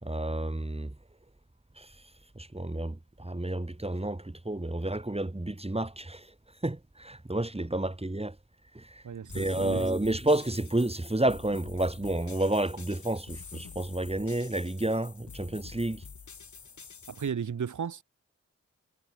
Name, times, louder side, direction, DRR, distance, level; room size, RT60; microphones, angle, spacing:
voice 1, 0.0-0.9 1.8-2.0 2.4-6.3 6.6-8.4 8.7-9.0 9.3-16.0, right 1 dB, 20° right, 4.0 m, -30 dB
voice 2, 9.0-9.8 17.1-18.0, right 7 dB, 85° right, 2.5 m, -34 dB
sound 1, 9.3-17.3, left 6 dB, 75° left, 4.8 m, -47 dB
cardioid pair, 45°, 29 cm